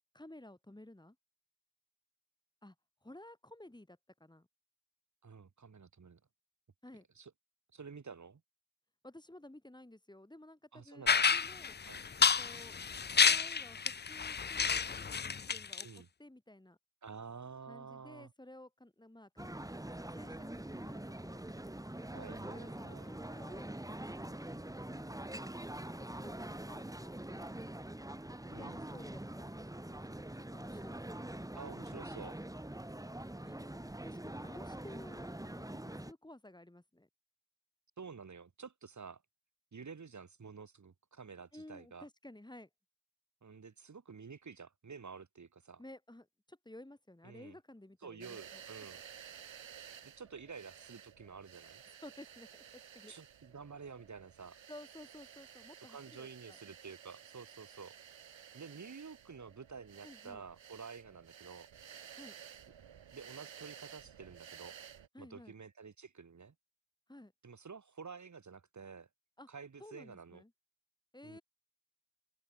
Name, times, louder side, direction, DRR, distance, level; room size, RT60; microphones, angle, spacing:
voice 1, 0.1-1.2 2.6-2.7 3.0-4.5 6.8-7.0 9.0-11.8 12.4-12.8 13.2-16.8 17.7-19.5 19.8-22.1 22.5-27.5 28.4-31.3 33.4-37.1 41.5-42.7 45.8-48.6 51.9-53.1 54.7-56.6 60.0-60.4 62.2-62.3 65.1-65.5 67.1-67.3 69.4-69.5 69.8-70.5 71.1-71.4, left 1 dB, 10° left, 6.7 m, -55 dB
voice 2, 5.2-6.2 7.2-7.3 7.7-8.4 10.7-11.3 11.9-12.0 15.8-16.1 17.0-18.3 22.1-23.1 28.5-28.8 31.5-32.4 38.0-39.2 39.7-42.1 43.4-45.8 47.2-47.6 48.0-49.0 50.0-51.8 53.1-54.6 55.9-57.9 58.5-61.7 63.1-64.8 65.2-66.5 67.4-69.1 69.5-70.4 71.2-71.4, right 5 dB, 40° right, 3.0 m, -50 dB
sound 1, 11.1-15.8, left 6 dB, 25° left, 0.5 m, -30 dB
sound 2, 19.4-36.1, right 1 dB, 10° right, 3.4 m, -44 dB
sound 3, 48.2-65.1, right 8 dB, 85° right, 7.5 m, -54 dB
open air
wide cardioid pair, 135°, 45 cm